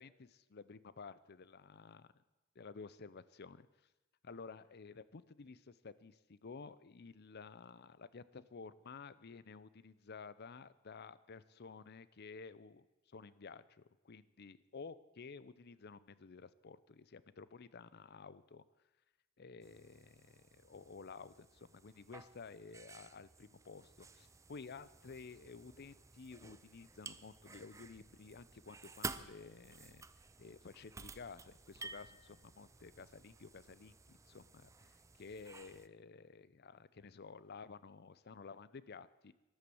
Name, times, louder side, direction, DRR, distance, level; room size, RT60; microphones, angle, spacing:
voice 1, 0.0-2.1 2.6-3.7 4.2-18.6 19.4-30.1 30.4-39.3, left 4 dB, 55° left, 17 dB, 0.6 m, -53 dB
sound 1, 19.6-35.9, right 4 dB, 15° right, 0.5 m, -53 dB
13.5 x 11.5 x 7.0 m, 1.1 s
head